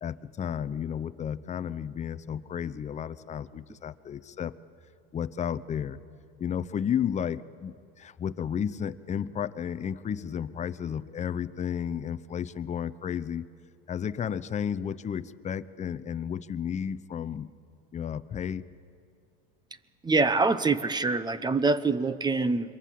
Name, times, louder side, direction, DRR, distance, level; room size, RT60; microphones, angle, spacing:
voice 1, 0.0-4.5 5.1-6.0 6.4-13.5 13.9-17.5 17.9-18.6, left 8 dB, 25° left, 0.7 m, -32 dB
voice 2, 20.0-22.8, right 3 dB, 15° right, 0.9 m, -25 dB
27.0 x 23.0 x 7.6 m
supercardioid pair, 120°, 30 cm